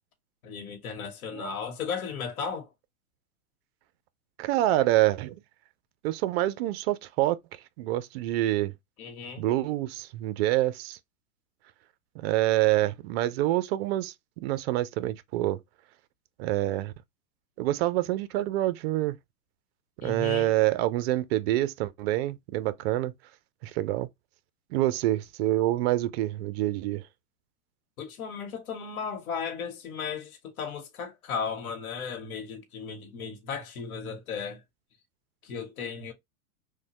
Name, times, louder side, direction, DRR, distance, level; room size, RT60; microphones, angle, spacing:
voice 1, 0.4-2.7 9.0-9.4 20.0-20.6 28.0-34.6 35.4-36.1, left 6 dB, 85° left, 1.0 m, -35 dB
voice 2, 4.4-5.3 6.0-7.4 7.8-8.7 9.4-11.0 12.2-15.6 16.4-16.9 17.6-19.2 20.0-23.1 23.6-24.1 24.7-27.0, right 15 dB, 50° right, 0.4 m, -26 dB
3.2 x 2.1 x 2.8 m
hypercardioid pair, 135°, 42 cm